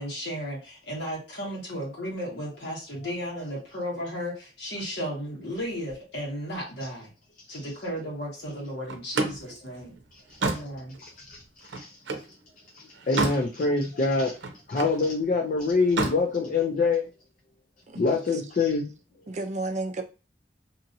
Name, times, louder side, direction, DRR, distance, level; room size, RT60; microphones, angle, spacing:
voice 1, 0.0-7.1 7.5-10.0 10.4-11.0, equal, 65° left, 1.4 m, -34 dB
Slam, 8.9-12.3 12.8-13.5 13.8-15.0 15.8-16.2, right 3 dB, 90° right, 0.6 m, -30 dB
voice 2, 11.0-11.9 12.7-14.4 14.7-17.1 17.9-18.9, left 3 dB, 45° left, 0.4 m, -25 dB
voice 3, 17.9-18.5 19.3-20.0, right 2 dB, 40° right, 0.4 m, -33 dB
2.8 x 2.7 x 2.6 m
head